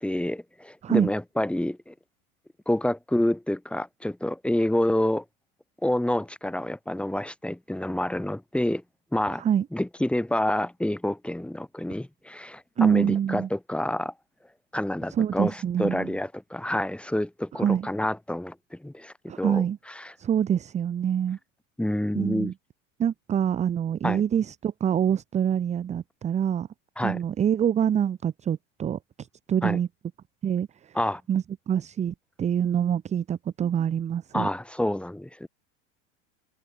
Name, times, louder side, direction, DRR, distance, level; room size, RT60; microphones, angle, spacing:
voice 1, 0.0-1.9 2.7-5.2 5.8-8.8 9.1-9.4 9.7-14.1 14.7-20.1 21.8-22.5 24.0-24.2 27.0-27.2 29.6-29.8 30.9-31.2 34.3-35.5, left 1 dB, 5° left, 3.2 m, -28 dB
voice 2, 12.8-13.5 15.1-16.1 17.6-17.9 19.3-19.8 20.2-21.4 22.1-22.5 23.0-26.7 27.0-29.9 30.4-31.0 31.3-34.5, right 9 dB, 20° right, 0.6 m, -25 dB
open air
supercardioid pair, 120°, 38 cm